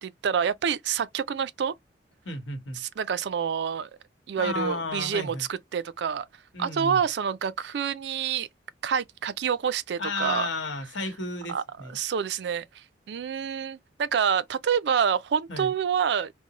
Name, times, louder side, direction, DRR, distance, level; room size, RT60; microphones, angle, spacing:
voice 1, 0.0-1.7 2.7-3.9 4.3-6.3 6.6-8.5 8.8-10.5 11.5-16.3, right 7 dB, 65° right, 0.3 m, -27 dB
voice 2, 2.2-2.8 4.4-5.4 6.5-7.0 10.0-12.0 15.5-15.7, left 2 dB, 90° left, 1.1 m, -33 dB
3.8 x 2.0 x 2.8 m
head